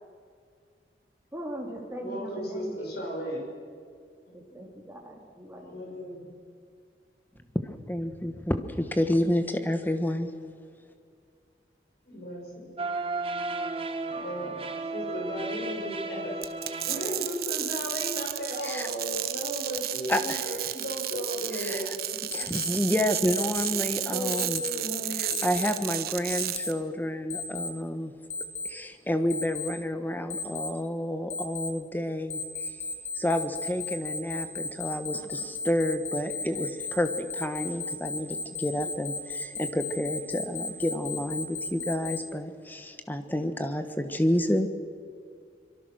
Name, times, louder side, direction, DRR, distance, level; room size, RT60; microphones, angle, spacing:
voice 1, 1.3-2.9 4.3-5.9 7.3-7.5, right 1 dB, 15° right, 0 dB, 3.5 m, -40 dB
voice 2, 2.0-3.5 5.6-6.3 12.1-12.8 14.1-14.6 14.9-16.3 16.8-22.5 24.0-25.4, equal, 60° left, 0 dB, 6.0 m, -35 dB
voice 3, 7.6-10.3 18.6-18.8 20.1-20.4 21.5-21.8 22.3-24.6 25.2-28.1 28.6-32.4 33.1-44.7, left 1 dB, 10° left, 8 dB, 1.4 m, -29 dB
sound 1, 12.8-17.6, right 3 dB, 35° right, 1.4 m, -34 dB
sound 2, 16.4-26.7, right 13 dB, 60° right, 1.0 m, -33 dB
Alarm, 22.3-22.7 23.3-23.7 24.3-24.7 25.3-25.7 26.3-26.7 27.3-27.7 28.3-28.7 29.3-29.7 30.3-30.7 31.3-31.7 32.3-42.2, left 4 dB, 40° left, 2.2 m, -34 dB
25.0 x 23.5 x 6.4 m, 2.2 s
head